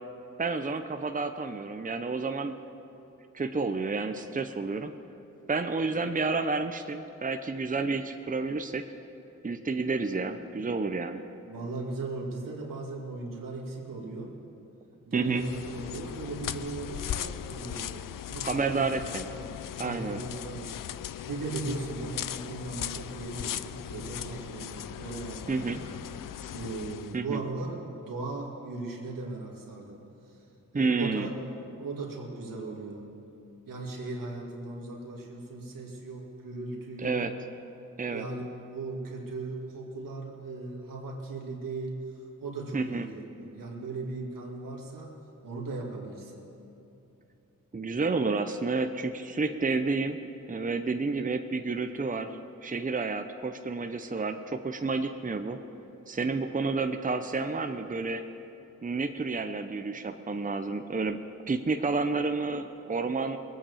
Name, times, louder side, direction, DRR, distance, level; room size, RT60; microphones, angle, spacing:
voice 1, 0.4-2.6 3.3-4.9 5.5-8.8 9.4-11.2 15.1-15.4 18.4-19.3 19.8-20.2 25.5-25.8 27.1-27.4 30.7-31.3 37.0-37.3 38.0-38.3 42.7-43.1 47.7-50.2 50.5-55.6 56.1-58.2 58.8-61.2 61.5-63.4, right 3 dB, 25° right, 7 dB, 0.8 m, -30 dB
voice 2, 11.5-14.4 15.0-18.9 19.4-19.5 19.8-20.8 21.3-25.8 26.5-30.4 30.7-31.3 31.8-33.2 33.7-37.3 38.1-45.2 45.4-46.5, right 3 dB, 85° right, -1 dB, 2.4 m, -38 dB
sound 1, 15.3-27.2, left 11 dB, 75° left, 0.5 m, -38 dB
20.5 x 9.0 x 7.0 m, 2.9 s
cardioid pair, 50°, 32 cm